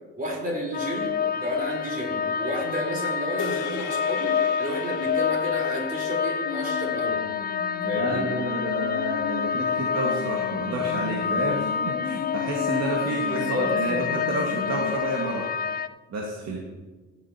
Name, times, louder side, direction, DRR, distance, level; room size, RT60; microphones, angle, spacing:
voice 1, 0.2-7.2 7.8-8.3 13.3-14.1, equal, 30° right, -1 dB, 3.9 m, -31 dB
sound 1, 0.7-15.9, left 7 dB, 30° left, 0.4 m, -28 dB
sound 2, 3.4-7.9, left 5 dB, 80° left, 1.6 m, -39 dB
sound 3, 6.5-15.0, left 7 dB, 50° left, 0.8 m, -36 dB
voice 2, 7.8-15.5 16.1-16.6, right 2 dB, 60° right, -1 dB, 1.9 m, -30 dB
16.0 x 10.5 x 2.9 m, 1.3 s
cardioid pair, 90°, 30 cm